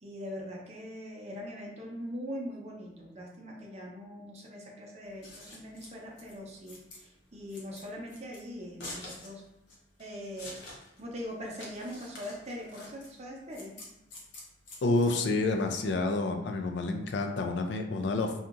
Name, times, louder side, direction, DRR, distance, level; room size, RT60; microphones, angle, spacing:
voice 1, 0.0-9.4 10.0-13.8, equal, 40° right, -1 dB, 0.6 m, -42 dB
Scissors, 5.0-15.6, left 2 dB, 90° left, 0.8 m, -48 dB
voice 2, 14.8-18.3, left 2 dB, 75° left, 5 dB, 0.4 m, -29 dB
2.8 x 2.4 x 2.4 m, 0.89 s
head